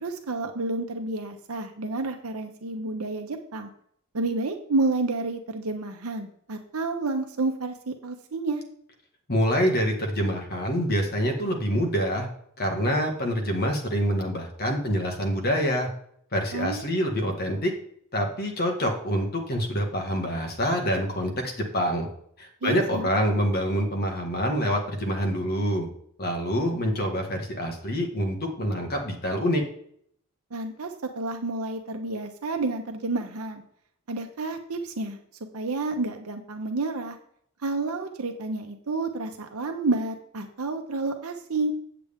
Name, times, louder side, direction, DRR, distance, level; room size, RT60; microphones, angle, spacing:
voice 1, 0.0-3.7 4.1-8.6 16.5-16.8 22.6-23.1 30.5-33.6 34.1-35.2 35.5-37.2 37.6-41.7, right 3 dB, 85° right, 5 dB, 0.8 m, -30 dB
voice 2, 9.3-12.3 12.6-15.9 16.3-17.7 18.1-22.1 22.4-25.8 26.2-29.6, equal, 45° left, 3 dB, 1.6 m, -26 dB
8.4 x 7.7 x 3.5 m, 0.67 s
head